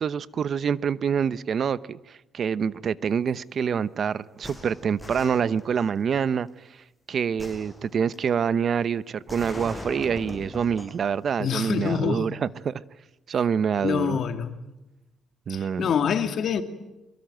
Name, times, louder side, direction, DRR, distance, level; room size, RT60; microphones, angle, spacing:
voice 1, 0.0-6.5 7.1-12.8 13.3-14.2 15.5-15.9, right 7 dB, 55° right, 17 dB, 0.9 m, -26 dB
sound 1, 4.4-6.0 7.4-8.4 9.3-11.1 11.5-11.6, left 1 dB, 5° left, 5.9 m, -40 dB
voice 2, 11.4-12.3 13.8-14.5 15.5-16.6, left 7 dB, 65° left, 8 dB, 2.3 m, -26 dB
24.0 x 22.5 x 9.2 m, 0.98 s
cardioid pair, 90°, 0 cm